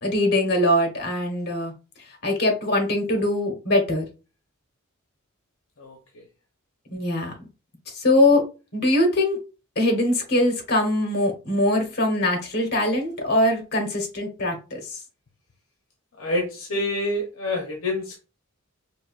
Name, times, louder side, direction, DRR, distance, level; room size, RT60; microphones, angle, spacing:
voice 1, 0.0-1.7 2.2-4.1 6.9-7.3 7.9-8.4 8.7-9.4 9.8-15.0, left 1 dB, 50° left, 3 dB, 1.1 m, -22 dB
voice 2, 16.2-18.2, left 1 dB, 70° left, 1 dB, 0.8 m, -27 dB
4.6 x 2.5 x 2.4 m, 0.32 s
head